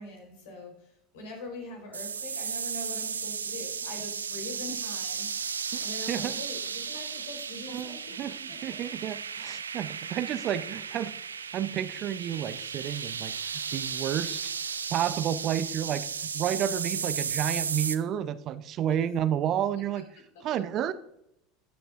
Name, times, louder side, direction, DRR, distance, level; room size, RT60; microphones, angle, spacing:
voice 1, 0.0-5.3 5.8-9.1 18.8-19.1 20.3-20.8, left 2 dB, 65° left, 2 dB, 4.1 m, -43 dB
sound 1, 1.9-18.0, right 6 dB, 80° right, 0.5 m, -35 dB
voice 2, 7.7-11.1 11.5-14.5 14.9-16.1 16.3-20.0 20.4-20.9, right 10 dB, 45° right, 14 dB, 0.7 m, -31 dB
14.0 x 10.0 x 2.6 m, 0.79 s
figure-of-eight pair, 75°, 0 cm